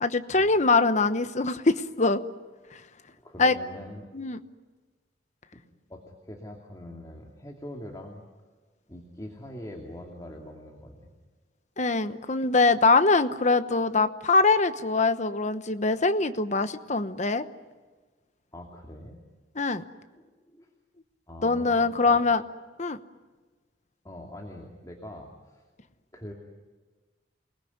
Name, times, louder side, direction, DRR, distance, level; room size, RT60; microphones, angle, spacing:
voice 1, 0.0-2.2 3.4-3.6 4.1-4.4 11.8-17.4 19.6-19.8 21.4-22.4 22.8-23.0, left 3 dB, 40° left, 10 dB, 1.0 m, -23 dB
voice 2, 3.2-4.1 5.9-8.3 8.9-11.1 18.5-19.2 20.1-20.7 21.3-22.2 24.0-25.6 26.1-26.3, left 1 dB, 20° left, 1 dB, 2.6 m, -43 dB
28.5 x 20.5 x 9.6 m, 1.3 s
head